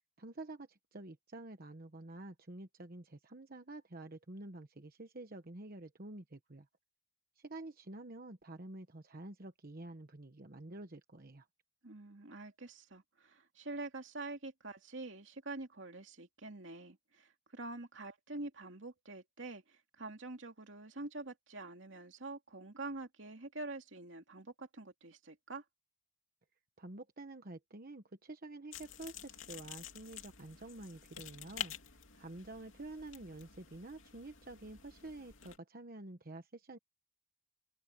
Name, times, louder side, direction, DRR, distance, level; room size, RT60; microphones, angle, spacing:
voice 1, 0.2-6.7 7.4-11.5 26.8-31.7 32.1-36.8, right 2 dB, 45° right, 1.1 m, -49 dB
voice 2, 11.8-25.6, right 2 dB, 65° right, 2.8 m, -46 dB
sound 1, 28.7-35.6, left 9 dB, 75° left, 2.9 m, -49 dB
head